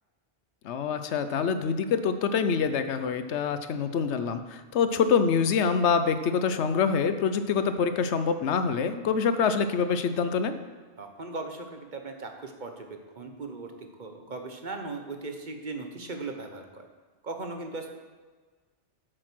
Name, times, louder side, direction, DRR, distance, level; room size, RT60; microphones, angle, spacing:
voice 1, 0.6-10.6, left 6 dB, 80° left, 10 dB, 1.0 m, -25 dB
voice 2, 11.0-16.9 17.2-17.9, right 3 dB, 45° right, 4 dB, 1.0 m, -38 dB
8.9 x 6.5 x 6.0 m, 1.4 s
omnidirectional pair, 1.1 m